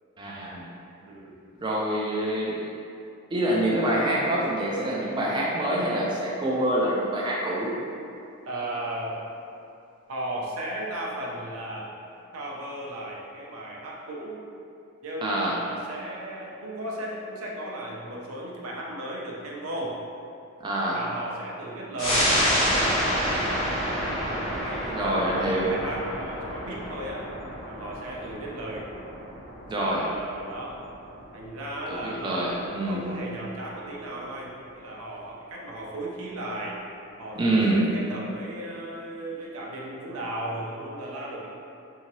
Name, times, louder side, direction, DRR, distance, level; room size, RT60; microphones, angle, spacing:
voice 1, 0.2-0.7 1.6-2.7 3.3-7.7 15.2-15.6 20.6-21.0 24.9-25.7 29.7-30.0 31.9-33.1 37.4-37.8, right 1 dB, 20° right, -5 dB, 0.3 m, -26 dB
voice 2, 1.1-1.4 8.4-9.2 10.1-11.9 12.3-14.4 15.0-20.0 20.9-22.3 24.0-27.3 27.7-28.9 29.8-30.8 31.3-36.8 37.2-41.5, right 1 dB, 85° right, -3 dB, 0.5 m, -35 dB
sound 1, 22.0-33.0 33.3-33.4, equal, 75° left, 1.1 m, -29 dB
2.7 x 2.7 x 3.0 m, 2.6 s
head